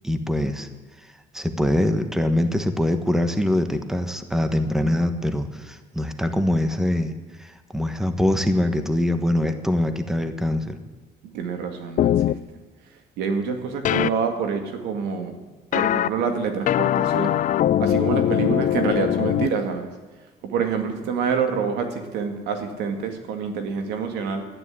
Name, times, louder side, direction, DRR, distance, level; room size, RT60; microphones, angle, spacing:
voice 1, 0.0-0.7 1.0-7.1 7.4-10.8, left 1 dB, 5° right, 8 dB, 1.3 m, -23 dB
voice 2, 11.2-12.3 13.2-15.4 15.7-17.4 17.8-19.9 20.4-24.4, right 6 dB, 90° right, 6 dB, 2.0 m, -27 dB
sound 1, 12.0-12.3 13.8-14.1 15.7-16.1 16.7-19.5, left 11 dB, 50° left, 0.5 m, -21 dB
12.0 x 10.0 x 9.9 m, 1.4 s
cardioid pair, 110°, 17 cm